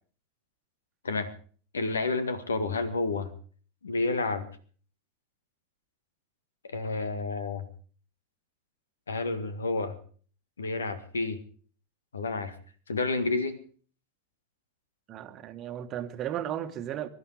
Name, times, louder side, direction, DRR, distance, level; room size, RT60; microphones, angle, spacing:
voice 1, 1.7-3.3 3.8-4.5 6.6-7.7 9.1-10.0 10.6-11.4 12.1-12.6 12.9-13.6, left 3 dB, 70° left, 14 dB, 1.8 m, -30 dB
voice 2, 15.1-17.1, right 11 dB, 30° right, 9 dB, 1.5 m, -35 dB
22.5 x 11.5 x 4.9 m, 0.43 s
figure-of-eight pair, 90°, 0 cm